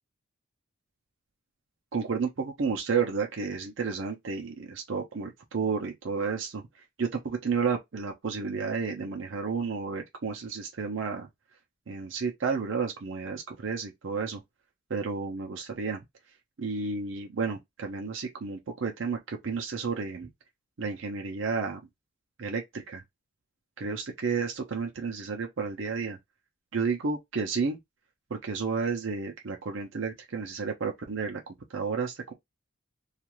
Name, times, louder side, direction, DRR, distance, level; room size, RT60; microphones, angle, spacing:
voice 1, 1.9-6.6 7.0-11.3 11.9-14.4 14.9-16.0 16.6-20.3 20.8-21.8 22.4-23.0 23.8-26.2 26.7-27.8 28.3-32.3, right 5 dB, 60° right, 0.6 m, -31 dB
2.4 x 2.4 x 2.9 m
head